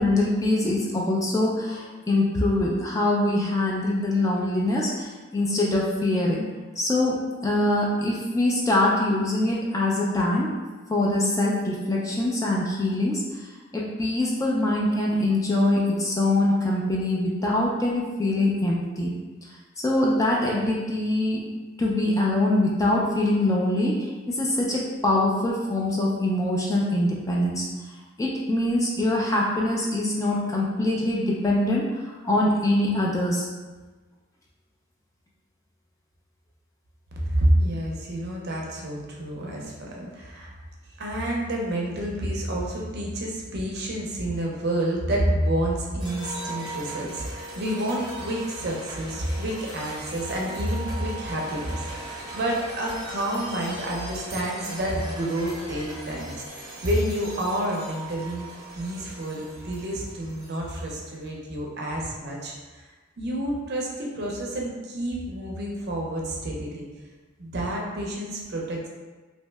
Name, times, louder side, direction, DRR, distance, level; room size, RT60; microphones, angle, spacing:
voice 1, 0.0-6.5 6.8-10.5 10.9-19.1 19.4-19.5 19.8-21.5 21.8-33.5, left 1 dB, 15° left, -3 dB, 0.3 m, -24 dB
voice 2, 37.2-40.5 41.0-58.5 58.7-62.8 63.2-66.8 67.4-68.9, right 1 dB, 55° right, -2 dB, 0.5 m, -29 dB
sound 1, 46.0-61.1, right 1 dB, 25° right, 0.8 m, -39 dB
2.7 x 2.1 x 3.2 m, 1.3 s
head